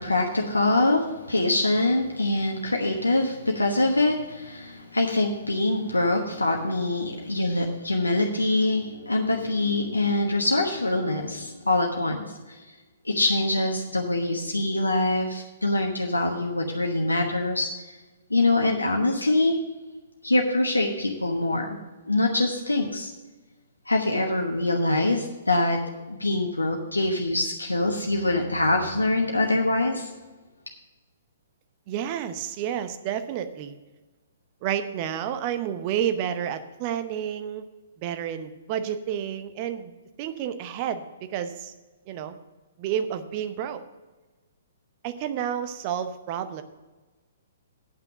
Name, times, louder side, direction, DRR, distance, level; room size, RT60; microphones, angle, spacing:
voice 1, 0.0-12.6 13.0-17.9 18.3-19.6 20.2-21.8 22.1-23.1 23.9-25.8 26.1-30.1, left 2 dB, 80° left, 1 dB, 1.1 m, -24 dB
voice 2, 31.9-33.7 34.6-37.7 38.0-39.9 40.2-41.7 42.1-42.4 42.8-43.8 45.0-46.6, right 9 dB, 35° right, 10 dB, 0.8 m, -30 dB
9.4 x 5.9 x 7.9 m, 1.2 s
figure-of-eight pair, 120°, 0 cm